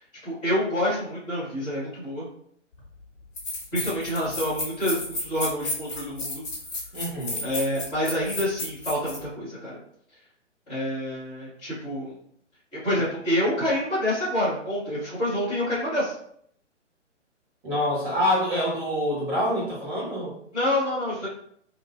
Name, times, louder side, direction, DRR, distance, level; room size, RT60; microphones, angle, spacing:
voice 1, 0.2-2.3 3.7-6.4 7.4-9.8 10.7-12.1 12.7-16.1 20.5-21.3, equal, 5° left, -22 dB, 0.4 m, -27 dB
sound 1, 2.8-2.9 3.4-9.2, left 2 dB, 25° left, 1.1 m, -32 dB
voice 2, 6.9-7.4 17.6-20.3, left 1 dB, 20° right, -8 dB, 1.3 m, -26 dB
2.9 x 2.6 x 2.4 m, 0.66 s
figure-of-eight pair, 130°, 36 cm